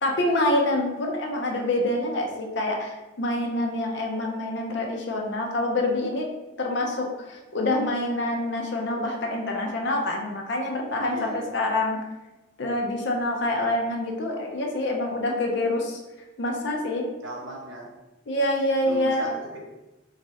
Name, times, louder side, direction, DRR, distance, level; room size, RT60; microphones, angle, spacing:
voice 1, 0.0-6.3 6.6-12.0 12.6-16.0 16.4-17.1 18.3-19.3, left 1 dB, 60° left, 1 dB, 0.6 m, -26 dB
voice 2, 11.1-11.5 17.2-17.9 18.8-19.6, right 2 dB, 65° right, -2 dB, 0.9 m, -37 dB
3.1 x 2.5 x 4.0 m, 1.1 s
head